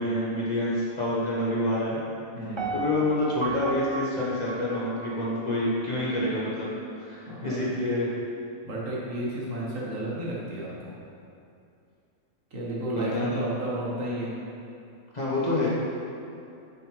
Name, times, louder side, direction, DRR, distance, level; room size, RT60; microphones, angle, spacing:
voice 1, 0.0-2.0 2.7-6.7 7.0-8.1 12.9-13.4 15.1-15.7, left 1 dB, 30° left, -8 dB, 1.5 m, -27 dB
voice 2, 2.3-2.7 7.3-7.8 8.6-11.0 12.5-14.3, right 1 dB, 70° right, -6 dB, 1.8 m, -32 dB
Piano, 2.6-5.6 6.1-6.2, right 3 dB, 45° right, 0.3 m, -35 dB
7.9 x 6.6 x 3.4 m, 2.6 s
omnidirectional pair, 1.4 m